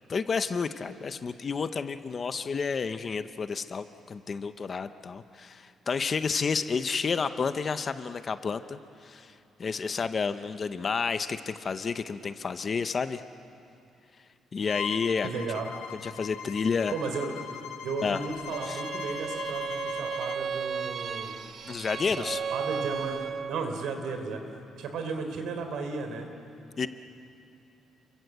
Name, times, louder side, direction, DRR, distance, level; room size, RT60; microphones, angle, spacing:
voice 1, 0.1-9.3 9.6-13.2 14.5-15.6 15.9-16.9 18.0-18.2 18.7-18.8 21.7-22.4 26.8-26.9, left 5 dB, 25° left, 11 dB, 0.7 m, -30 dB
Bowed string instrument, 14.7-20.4, left 9 dB, 85° left, 1.2 m, -40 dB
voice 2, 15.2-15.7 16.9-17.4 17.8-21.4 22.2-24.4 24.8-26.3, right 4 dB, 65° right, 6 dB, 3.6 m, -34 dB
Bowed string instrument 2, 18.5-23.6, right 6 dB, 30° right, 0.7 m, -34 dB
29.5 x 23.5 x 8.0 m, 2.6 s
cardioid pair, 175°, 0 cm